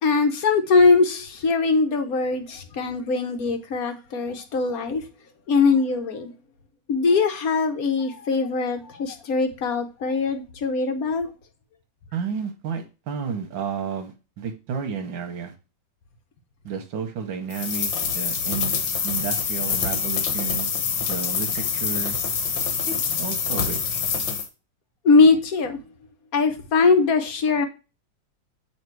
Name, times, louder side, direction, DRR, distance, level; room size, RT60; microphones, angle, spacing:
voice 1, 0.0-5.0 5.5-6.3 6.9-11.3 25.0-25.8 26.3-27.7, left 4 dB, 60° left, 1.2 m, -21 dB
voice 2, 12.1-15.5 16.6-20.7 21.0-22.2 22.9-24.0, right 6 dB, 85° right, 1.6 m, -32 dB
sound 1, 17.5-24.5, left 6 dB, 85° left, 1.7 m, -26 dB
8.5 x 3.0 x 4.6 m
omnidirectional pair, 2.0 m